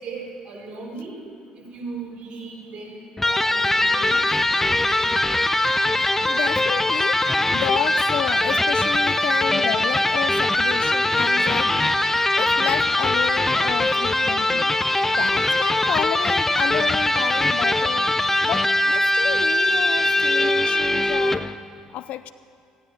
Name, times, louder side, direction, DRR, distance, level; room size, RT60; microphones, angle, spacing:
voice 1, 0.0-1.2 1.5-4.4, right 3 dB, 50° right, -3 dB, 4.3 m, -37 dB
Electric guitar, 3.2-21.5, left 1 dB, 15° left, 0.6 m, -21 dB
voice 2, 6.3-7.2 7.5-12.0 12.3-14.7 15.2-18.1 18.4-21.5 21.9-22.3, left 12 dB, 75° left, 14 dB, 0.4 m, -31 dB
15.5 x 10.0 x 8.3 m, 2.2 s
supercardioid pair, 85°, 2 cm